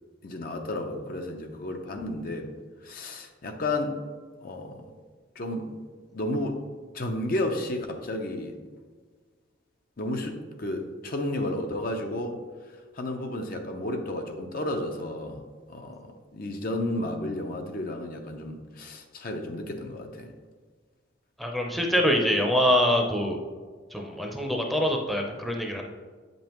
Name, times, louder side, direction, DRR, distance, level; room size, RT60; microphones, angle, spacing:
voice 1, 0.2-2.5 2.8-4.0 4.4-4.9 5.4-5.7 6.1-6.6 6.9-8.6 10.0-12.4 12.9-15.4 15.7-20.3, left 1 dB, 50° left, 4 dB, 0.6 m, -32 dB
voice 2, 21.4-23.4 23.9-25.8, equal, ahead, 1 dB, 0.6 m, -24 dB
8.2 x 5.3 x 3.0 m, 1.5 s
head